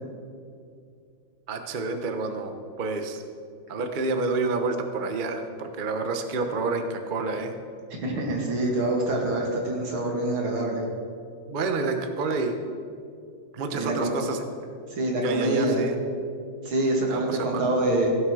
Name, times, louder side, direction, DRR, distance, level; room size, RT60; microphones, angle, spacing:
voice 1, 1.5-3.2 3.7-7.5 11.5-12.6 13.5-14.4 15.2-15.9 17.1-17.7, right 3 dB, 40° right, 6 dB, 0.7 m, -29 dB
voice 2, 8.0-10.8 13.7-14.1 14.9-15.8 16.6-18.1, right 2 dB, 85° right, -1 dB, 3.1 m, -25 dB
15.5 x 7.9 x 6.3 m, 2.4 s
omnidirectional pair, 2.2 m